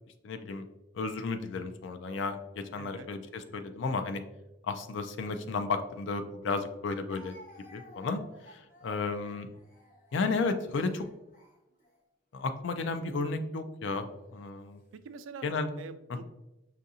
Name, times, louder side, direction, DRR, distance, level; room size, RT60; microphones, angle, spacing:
voice 1, 0.2-0.6 0.9-4.2 4.6-7.4 7.7-8.2 8.5-9.5 10.1-11.1 12.3-14.1 14.3-14.8 15.4-15.7 16.1-16.2, left 4 dB, 65° left, 8 dB, 0.3 m, -33 dB
voice 2, 2.8-3.1 14.0-14.1 14.9-15.5 15.8-16.2, right 5 dB, 80° right, 11 dB, 0.3 m, -45 dB
Speech, 5.9-6.0 7.1-12.0 12.7-13.0 13.9-14.5, left 1 dB, 40° left, 0.9 m, -55 dB
5.6 x 2.5 x 2.6 m, 0.94 s
head